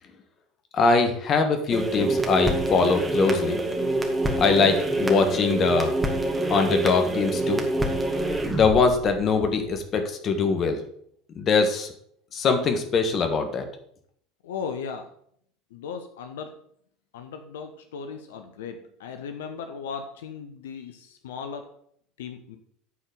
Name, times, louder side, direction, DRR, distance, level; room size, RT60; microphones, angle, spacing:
voice 1, 0.7-3.6 4.4-5.9 6.5-7.6 8.5-10.8 11.3-11.9 12.3-13.7, left 4 dB, 40° left, 6 dB, 1.4 m, -22 dB
sound 1, 1.7-9.7, right 1 dB, 15° right, 1.8 m, -26 dB
voice 2, 14.4-15.1 15.7-16.5 17.1-21.6 22.2-22.6, left 6 dB, 75° left, 6 dB, 0.7 m, -37 dB
8.6 x 4.5 x 6.9 m, 0.66 s
hypercardioid pair, 75°, 0 cm